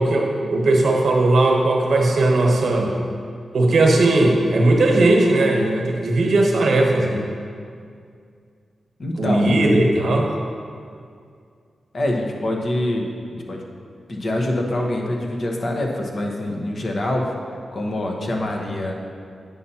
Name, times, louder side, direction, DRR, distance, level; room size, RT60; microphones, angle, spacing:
voice 1, 0.0-2.9 3.5-7.2 9.2-10.3, right 2 dB, 75° right, 0 dB, 1.0 m, -17 dB
voice 2, 9.0-9.6 11.9-13.1 13.5-13.6 14.1-17.3 17.7-18.9, left 1 dB, 55° left, 0 dB, 1.0 m, -24 dB
9.3 x 5.5 x 2.9 m, 2.3 s
cardioid pair, 70°, 0 cm